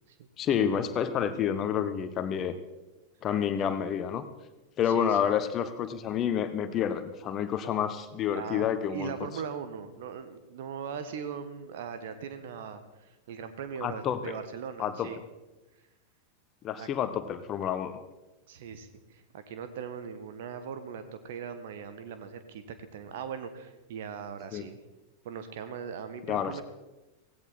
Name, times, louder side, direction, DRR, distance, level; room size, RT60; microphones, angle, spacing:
voice 1, 0.4-2.6 3.2-4.2 4.8-9.1 13.8-14.2 14.8-15.1 16.6-18.0 24.5-24.7 26.3-26.6, left 9 dB, 30° left, 11 dB, 1.2 m, -29 dB
voice 2, 4.8-5.3 8.3-15.2 16.8-16.9 18.5-24.8 25.2-26.6, right 7 dB, 55° right, 10 dB, 1.7 m, -40 dB
17.5 x 16.5 x 4.4 m, 1.1 s
figure-of-eight pair, 90°, 0 cm